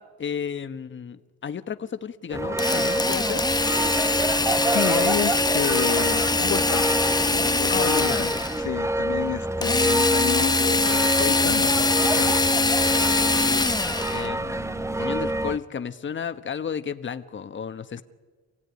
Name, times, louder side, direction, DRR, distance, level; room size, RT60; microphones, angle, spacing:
voice 1, 0.0-3.4 7.7-8.3 13.4-13.7 14.1-18.0, left 7 dB, 40° left, 10 dB, 1.3 m, -33 dB
sound 1, 2.3-15.6, right 1 dB, 10° right, 0.7 m, -27 dB
Drill, 2.6-8.7 9.6-14.3, left 3 dB, 15° left, 1.1 m, -23 dB
voice 2, 4.7-6.9 7.2-8.3 8.6-12.4, left 11 dB, 70° left, 9 dB, 1.0 m, -30 dB
26.0 x 16.5 x 9.7 m, 1.4 s
cardioid pair, 90°, 30 cm